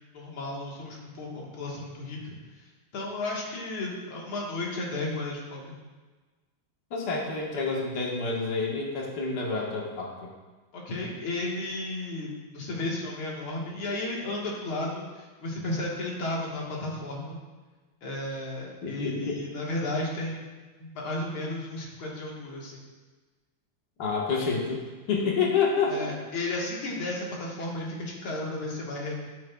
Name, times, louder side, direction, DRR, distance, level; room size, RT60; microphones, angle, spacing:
voice 1, 0.1-2.4 2.9-5.8 10.7-17.4 18.0-20.4 20.8-22.8 25.9-29.1, left 2 dB, 80° left, -3 dB, 2.4 m, -33 dB
voice 2, 6.9-10.1 18.8-19.4 24.0-24.8 25.1-26.1, left 4 dB, 55° left, -3 dB, 1.9 m, -28 dB
9.9 x 9.0 x 2.3 m, 1.3 s
omnidirectional pair, 2.3 m